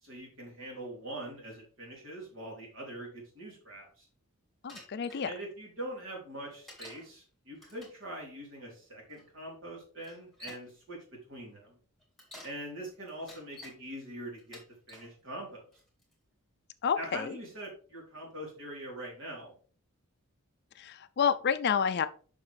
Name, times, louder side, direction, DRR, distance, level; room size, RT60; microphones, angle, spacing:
voice 1, 0.0-4.1 5.2-11.8 12.4-14.6 14.9-15.6 17.0-19.5, right 1 dB, 60° right, -2 dB, 3.6 m, -43 dB
voice 2, 4.6-5.3 16.8-17.4 20.8-22.1, left 7 dB, 50° left, 13 dB, 0.4 m, -29 dB
Bicycle, 4.7-5.2 6.7-7.1 7.6-8.0 9.1-9.2 10.0-10.7 12.0-12.6 13.1-13.8 14.4-15.1 15.7-16.1, left 1 dB, ahead, 2.2 m, -50 dB
7.2 x 5.8 x 3.2 m, 0.41 s
head